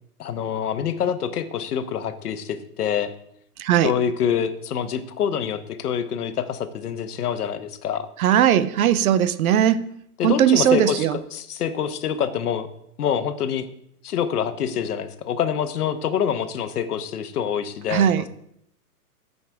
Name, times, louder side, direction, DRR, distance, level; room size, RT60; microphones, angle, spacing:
voice 1, 0.2-3.1 3.8-8.1 10.2-12.7 13.0-13.7 14.0-18.3, left 8 dB, 70° left, 9 dB, 1.2 m, -26 dB
voice 2, 3.6-3.9 8.2-9.9 10.2-11.2 17.9-18.3, right 10 dB, 65° right, 15 dB, 0.8 m, -19 dB
14.5 x 5.4 x 3.5 m, 0.73 s
hypercardioid pair, 130°, 47 cm